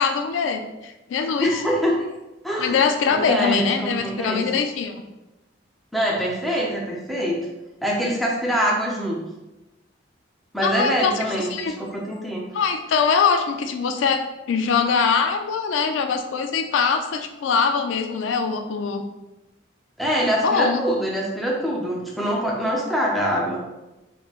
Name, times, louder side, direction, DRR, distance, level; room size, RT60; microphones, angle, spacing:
voice 1, 0.0-1.6 2.6-4.9 10.6-11.1 11.5-11.7 12.5-14.2 14.5-19.0 20.4-20.8, left 5 dB, 80° left, 6 dB, 0.3 m, -22 dB
voice 2, 1.4-2.1 2.4-2.8 3.1-4.5 5.9-7.5 7.8-9.2 10.5-12.4 20.0-23.6, equal, ahead, -3 dB, 0.5 m, -24 dB
3.5 x 3.2 x 2.4 m, 1.0 s
head